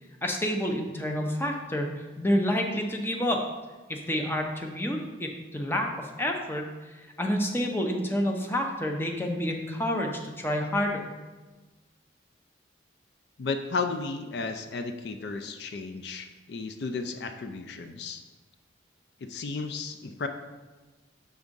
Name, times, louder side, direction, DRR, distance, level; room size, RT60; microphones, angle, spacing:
voice 1, 0.2-3.5 3.9-11.1, equal, 10° left, 2 dB, 0.6 m, -29 dB
voice 2, 13.4-18.2 19.2-20.3, left 4 dB, 60° left, 7 dB, 0.4 m, -34 dB
6.4 x 3.5 x 5.2 m, 1.2 s
head